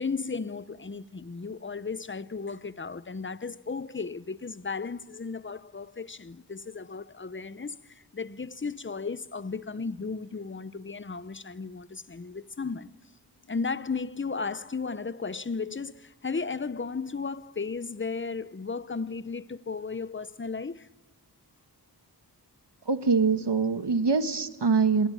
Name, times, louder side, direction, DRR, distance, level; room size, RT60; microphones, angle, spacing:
voice 1, 0.0-13.0 13.5-20.9, left 4 dB, 30° left, 0.8 m, -35 dB
voice 2, 22.8-25.1, right 4 dB, 75° right, 1.5 m, -24 dB
28.5 x 21.0 x 8.8 m
wide cardioid pair, 70°, 41 cm